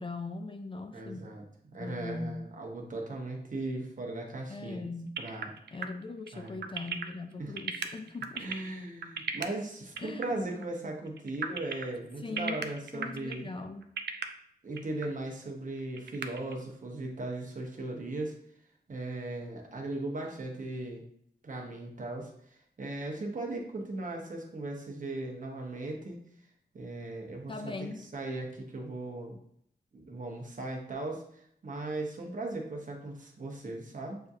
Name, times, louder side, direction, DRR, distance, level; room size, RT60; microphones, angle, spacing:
voice 1, 0.0-1.3 1.8-2.5 4.5-5.2 5.7-8.5 10.0-10.6 12.2-12.7 12.9-13.9 27.5-28.1, left 3 dB, 30° left, 5 dB, 0.4 m, -40 dB
voice 2, 0.9-4.9 5.2-5.5 6.3-6.6 7.4-7.5 8.3-13.5 14.6-18.3 18.9-21.0 21.4-26.2 26.7-27.7 28.0-29.4 29.9-34.2, right 2 dB, 50° right, 1 dB, 0.9 m, -38 dB
sound 1, 5.2-9.5 10.0-10.3 10.5-10.7 11.1-11.9 12.4-13.5 13.8-14.2 14.8-15.1 15.4-15.5 15.8-16.6, right 7 dB, 85° right, 0.4 m, -35 dB
6.6 x 2.7 x 2.4 m, 0.70 s
wide cardioid pair, 115°, 17 cm